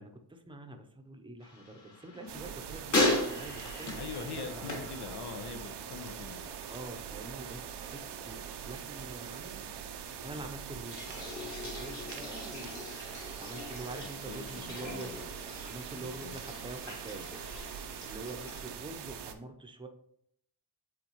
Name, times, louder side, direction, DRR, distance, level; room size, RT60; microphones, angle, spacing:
voice 1, 0.0-4.8 6.7-9.7 10.2-12.9 13.4-15.2 15.6-17.3 18.0-19.9, right 2 dB, 10° right, 5 dB, 0.7 m, -46 dB
sound 1, 1.4-5.8 6.1-6.7 10.8-18.7, left 2 dB, 45° left, 2.0 m, -37 dB
sound 2, 2.3-19.3, right 8 dB, 80° right, 0.7 m, -43 dB
voice 2, 3.9-6.4 14.3-15.2 15.9-16.4, left 5 dB, 70° left, 7 dB, 1.0 m, -43 dB
8.2 x 3.7 x 3.0 m, 0.71 s
cardioid pair, 115°, 41 cm